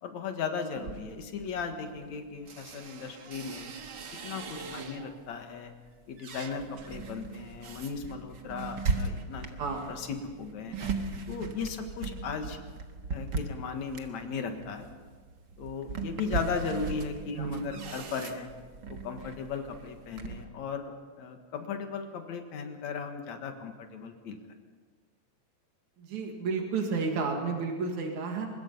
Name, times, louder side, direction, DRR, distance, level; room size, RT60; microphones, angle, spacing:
voice 1, 0.0-3.7 4.2-5.7 6.1-9.5 9.9-10.8 11.3-12.6 13.1-14.9 15.6-18.5 18.9-24.4, left 5 dB, 75° left, 6 dB, 2.9 m, -37 dB
sound 1, 0.7-5.3 5.7-20.4, right 4 dB, 45° right, 1.6 m, -38 dB
voice 2, 4.6-5.0 9.6-9.9 17.3-17.7 26.0-28.5, right 4 dB, 85° right, 2 dB, 3.4 m, -32 dB
24.0 x 21.0 x 5.5 m, 1.5 s
omnidirectional pair, 3.3 m